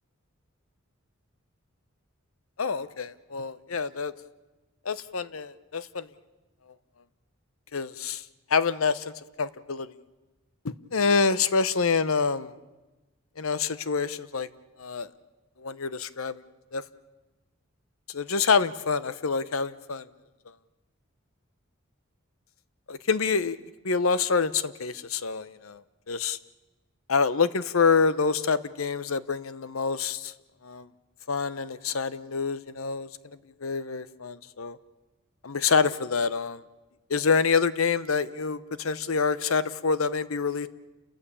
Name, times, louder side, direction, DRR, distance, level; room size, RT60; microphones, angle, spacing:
voice 1, 2.6-4.1 4.8-6.1 7.7-8.2 8.5-9.9 10.6-12.5 13.4-14.5 14.8-15.1 15.6-16.4 16.7-16.8 18.1-20.0 22.9-23.6 23.8-25.8 26.1-26.4 27.1-30.3 30.6-30.9 31.3-33.1 33.6-34.8 35.4-36.6 37.1-40.7, left 5 dB, 85° left, 16 dB, 0.9 m, -26 dB
29.5 x 14.5 x 8.5 m, 1.1 s
head